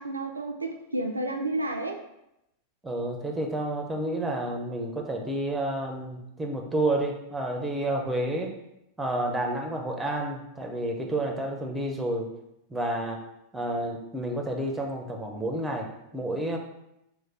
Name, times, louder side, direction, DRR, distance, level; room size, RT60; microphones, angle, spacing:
voice 1, 0.0-2.0, right 2 dB, 80° right, 3 dB, 0.3 m, -31 dB
voice 2, 2.8-8.5 9.0-12.3 12.7-13.2 13.5-16.6, right 1 dB, 10° right, 2 dB, 0.5 m, -30 dB
3.2 x 2.1 x 4.2 m, 0.85 s
figure-of-eight pair, 90°, 0 cm